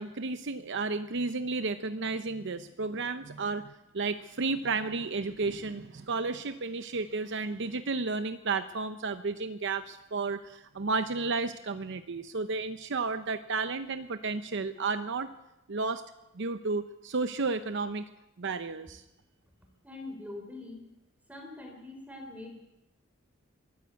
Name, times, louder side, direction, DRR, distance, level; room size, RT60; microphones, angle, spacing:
voice 1, 0.0-15.3 15.7-16.0 16.4-18.0 18.4-19.0, right 4 dB, 60° right, 10 dB, 0.8 m, -32 dB
voice 2, 19.8-20.8 21.3-22.6, left 2 dB, 5° right, 3 dB, 3.9 m, -43 dB
23.0 x 14.0 x 8.3 m, 0.94 s
head